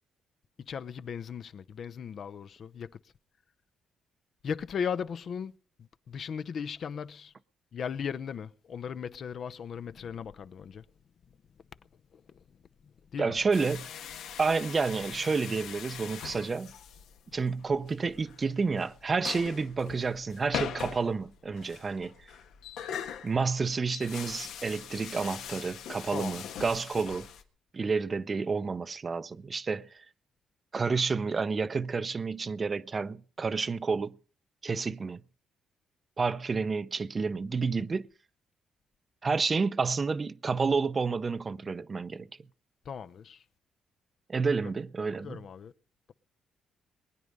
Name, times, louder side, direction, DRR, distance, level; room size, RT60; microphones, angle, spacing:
voice 1, 0.7-2.9 4.4-5.5 5.8-7.3 7.7-10.8 12.1-12.4 12.8-13.3 26.1-26.4 42.8-43.4 45.2-45.7, left 7 dB, 55° left, 0.7 m, -37 dB
voice 2, 13.2-13.9 14.4-16.7 17.3-22.3 23.2-27.3 27.7-30.0 30.7-34.2 34.6-35.2 36.2-38.1 39.2-42.3 44.3-45.4, right 4 dB, 35° right, 0.6 m, -30 dB
sound 1, 13.5-27.4, left 8 dB, 80° left, 1.6 m, -42 dB
21.0 x 9.6 x 5.3 m
cardioid pair, 90°, 0 cm